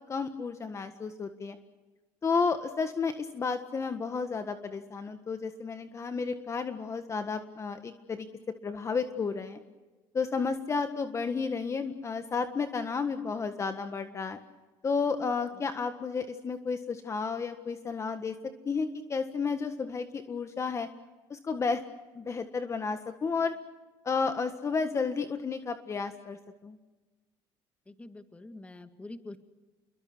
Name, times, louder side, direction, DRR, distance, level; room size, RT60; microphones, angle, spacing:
voice 1, 0.1-1.6 2.2-8.3 8.6-9.6 10.1-14.4 14.8-18.4 18.6-20.9 21.3-21.8 22.1-23.5 24.0-26.4 26.6-26.8, left 5 dB, 30° left, 8 dB, 1.6 m, -32 dB
voice 2, 27.9-29.4, left 2 dB, 15° left, 8 dB, 2.1 m, -45 dB
29.5 x 22.5 x 6.2 m, 1.2 s
cardioid pair, 115°, 10 cm